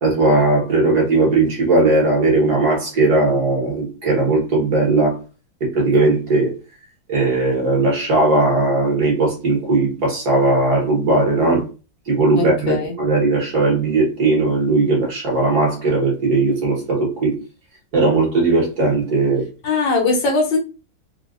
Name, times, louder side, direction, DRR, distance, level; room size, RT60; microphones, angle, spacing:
voice 1, 0.0-5.2 5.6-6.5 7.1-11.6 12.1-17.4 17.9-19.5, right 2 dB, 55° right, 1.8 m, -18 dB
voice 2, 12.3-13.0 19.6-20.6, left 3 dB, 75° left, 1.7 m, -20 dB
4.1 x 2.5 x 2.5 m
omnidirectional pair, 2.0 m